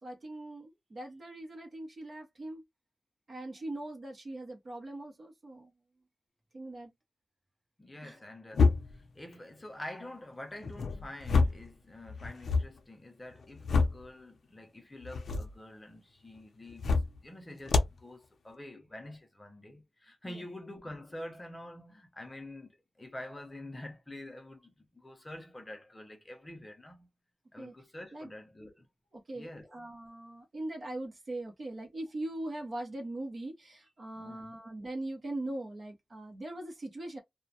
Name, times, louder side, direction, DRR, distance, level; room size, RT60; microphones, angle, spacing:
voice 1, 0.0-2.6 3.3-5.7 6.5-6.9 8.0-8.2 20.3-20.4 27.6-27.7 28.1-28.3 29.1-37.2, right 1 dB, 40° right, 0.9 m, -41 dB
voice 2, 7.8-16.8 17.2-22.7 23.0-27.1 27.5-28.9 29.3-29.7 34.2-34.5, left 1 dB, 20° left, 0.6 m, -47 dB
sound 1, 8.5-9.1 10.6-11.7 12.1-12.7 13.3-14.1 15.0-15.5 16.7-17.2 17.7-18.0, left 4 dB, 80° left, 0.5 m, -27 dB
2.4 x 2.1 x 2.7 m
wide cardioid pair, 155°, 0 cm